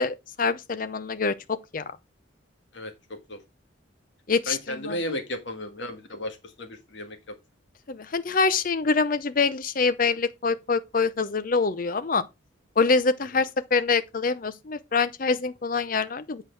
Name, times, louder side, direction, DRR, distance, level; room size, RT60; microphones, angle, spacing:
voice 1, 0.0-1.8 4.3-5.0 7.9-12.2 12.8-16.4, left 4 dB, 45° left, 0.6 m, -25 dB
voice 2, 2.7-3.4 4.5-7.2, left 1 dB, 65° left, 1.7 m, -34 dB
8.3 x 4.7 x 4.6 m
head